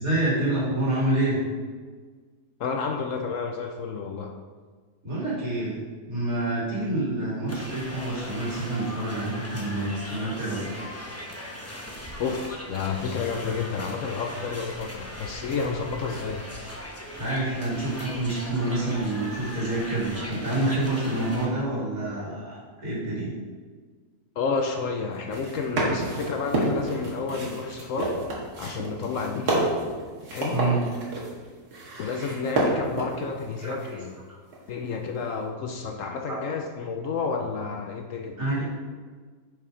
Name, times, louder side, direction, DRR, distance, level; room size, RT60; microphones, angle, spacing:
voice 1, 0.0-1.4 5.0-5.8 6.1-10.7 17.1-23.3 30.5-30.8 33.6-34.0 34.3-34.4 36.3-36.4 38.4-38.6, right 2 dB, 65° right, -8 dB, 3.3 m, -27 dB
voice 2, 2.6-4.3 12.2-16.4 24.4-28.2 28.6-29.7 30.3-30.6 32.0-34.1 34.7-38.4, left 5 dB, 65° left, 4 dB, 0.9 m, -30 dB
sound 1, 7.5-21.5, left 1 dB, 10° left, 0.8 m, -39 dB
sound 2, 25.1-33.9 34.5-35.1, right 2 dB, 90° right, 2.1 m, -29 dB
6.9 x 6.0 x 5.0 m, 1.5 s
omnidirectional pair, 1.6 m